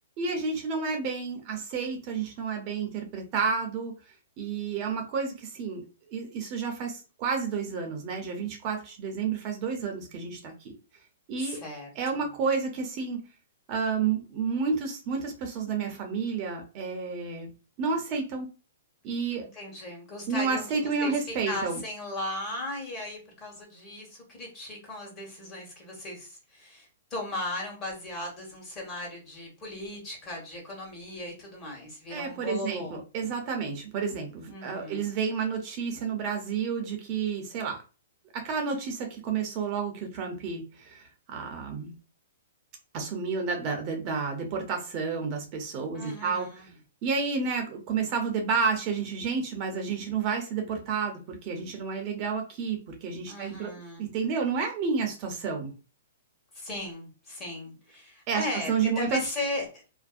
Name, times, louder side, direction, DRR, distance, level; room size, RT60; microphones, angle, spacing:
voice 1, 0.2-3.9 4.4-5.8 6.1-10.8 11.3-11.6 12.0-13.2 13.7-17.5 17.8-18.5 19.0-19.4 20.3-21.8 32.1-37.8 38.3-41.9 42.9-46.5 47.0-53.7 54.0-55.7 58.3-59.2, right 5 dB, 35° right, 3 dB, 0.6 m, -30 dB
voice 2, 11.4-12.3 19.5-21.1 21.4-33.0 34.5-35.0 45.9-46.7 53.3-54.1 56.5-59.8, left 1 dB, 25° left, -1 dB, 1.1 m, -37 dB
2.5 x 2.0 x 2.3 m, 0.33 s
hypercardioid pair, 140°, 0 cm